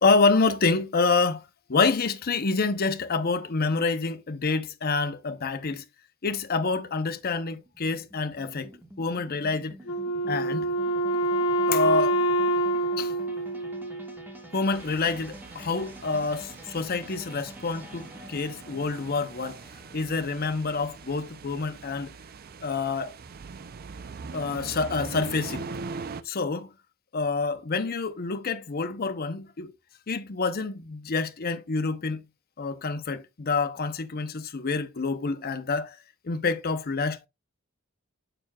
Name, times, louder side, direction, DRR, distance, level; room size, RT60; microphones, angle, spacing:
voice 1, 0.0-5.8 6.2-8.7 9.0-9.8 10.3-10.7 11.7-12.2 13.0-13.1 14.5-19.6 19.9-22.1 22.6-23.2 24.3-25.7 26.2-26.7 27.1-29.7 30.1-32.3 32.6-36.0 36.2-37.3, left 4 dB, 45° left, 0.7 m, -27 dB
sound 1, 6.4-20.6, equal, 10° right, 1.4 m, -48 dB
Wind instrument woodwind instrument, 9.9-14.4, right 1 dB, 90° left, 0.8 m, -26 dB
sound 2, 14.7-26.2, right 4 dB, 45° right, 0.5 m, -42 dB
7.3 x 6.8 x 2.3 m
head